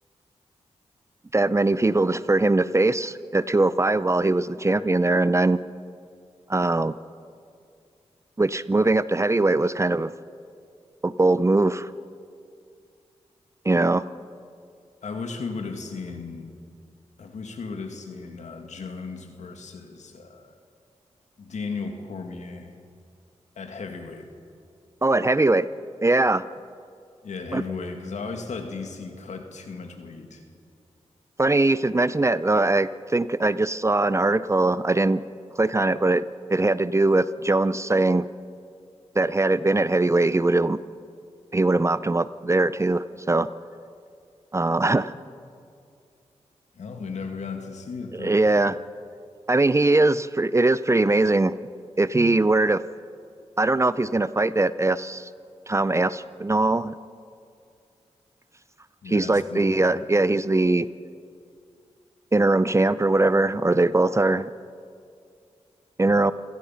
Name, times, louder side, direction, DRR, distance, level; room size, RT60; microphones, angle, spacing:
voice 1, 1.3-5.6 6.5-6.9 8.4-10.1 11.0-11.9 13.6-14.0 25.0-25.7 26.0-26.4 27.5-27.6 31.4-35.2 35.6-36.2 36.5-38.2 39.2-40.8 41.5-43.5 44.5-45.1 48.2-48.8 49.5-51.5 52.0-52.8 53.6-55.3 55.7-56.9 59.1-60.9 62.3-64.5 66.0-66.3, right 2 dB, 25° right, 16 dB, 0.6 m, -21 dB
voice 2, 15.0-16.5 17.2-20.5 21.4-22.7 23.6-24.3 27.2-30.4 46.7-48.4 59.0-59.8, left 4 dB, 75° left, 4 dB, 2.3 m, -35 dB
27.0 x 17.0 x 5.9 m, 2.3 s
cardioid pair, 55°, 12 cm